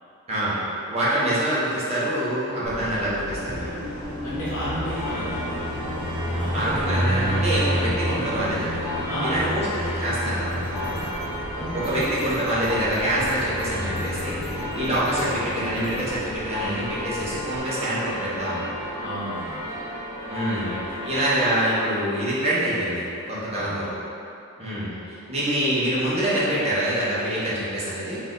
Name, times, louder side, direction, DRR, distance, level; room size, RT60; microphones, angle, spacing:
voice 1, 0.9-3.7 6.5-11.1 11.7-18.7 20.3-20.7 21.0-24.0 24.6-28.2, right 1 dB, 30° right, -10 dB, 1.0 m, -26 dB
Car passing by, 2.6-17.6, equal, 35° left, 1.2 m, -31 dB
voice 2, 4.2-5.5 6.3-6.7 9.1-9.6 11.5-12.4 19.0-19.8 20.6-21.2 23.5-23.7, equal, 80° left, -11 dB, 1.3 m, -32 dB
sound 1, 4.7-21.8, left 1 dB, 10° right, 0.6 m, -33 dB
sound 2, 10.4-16.2, right 2 dB, 70° right, 0.4 m, -44 dB
4.2 x 2.6 x 3.7 m, 2.8 s
head